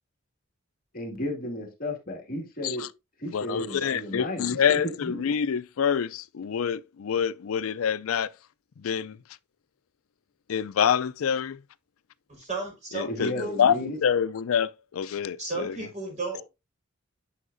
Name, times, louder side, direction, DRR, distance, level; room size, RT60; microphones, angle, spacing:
voice 1, 0.9-2.8 3.2-5.2 13.1-14.0, left 1 dB, 40° left, 2.1 m, -33 dB
voice 2, 3.3-8.3 8.8-9.2 10.5-11.6 12.9-15.8, left 7 dB, 75° left, 0.4 m, -26 dB
voice 3, 12.3-13.5 15.4-16.4, right 3 dB, 35° right, 4.4 m, -34 dB
9.7 x 5.6 x 2.6 m
head